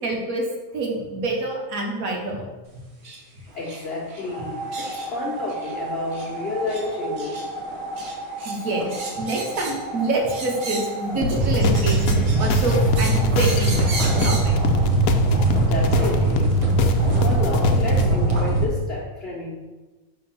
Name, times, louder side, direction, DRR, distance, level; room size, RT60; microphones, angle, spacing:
voice 1, 0.0-0.4 0.7-2.4 6.8-6.9 8.4-14.5, right 2 dB, 80° right, 0 dB, 1.5 m, -27 dB
sound 1, 3.0-3.2 3.6-3.8 4.1-4.2 4.7-5.1 5.5-5.7 6.1-6.3 6.7-6.8 7.2-7.5 8.0-8.6 8.9-9.9 10.3-11.0 11.4-14.5, right 3 dB, 45° right, 1.1 m, -35 dB
voice 2, 3.5-7.3 15.6-16.6 17.2-19.5, left 3 dB, 50° left, -7 dB, 1.4 m, -30 dB
sound 2, 4.3-18.6, right 2 dB, 30° right, 0.8 m, -23 dB
sound 3, 11.2-18.0, left 4 dB, 85° left, 1.0 m, -27 dB
5.5 x 3.5 x 5.8 m, 1.2 s
omnidirectional pair, 1.5 m